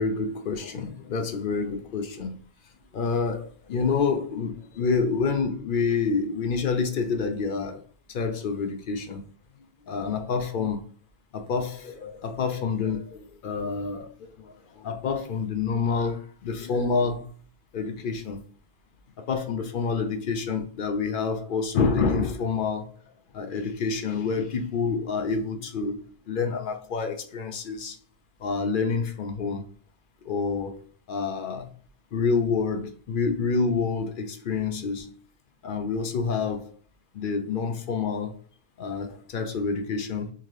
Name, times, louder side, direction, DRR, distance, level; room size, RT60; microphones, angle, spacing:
voice 1, 0.0-2.4 2.9-7.8 8.1-9.2 9.9-10.8 11.3-17.3 17.7-18.4 19.3-22.9 23.3-25.9 26.3-28.0 28.4-29.7 30.3-30.8 31.1-31.7 32.1-35.2 35.6-36.7 37.1-38.4 38.8-40.3, left 5 dB, 65° left, 0.7 m, -28 dB
3.7 x 2.7 x 3.1 m
omnidirectional pair, 1.1 m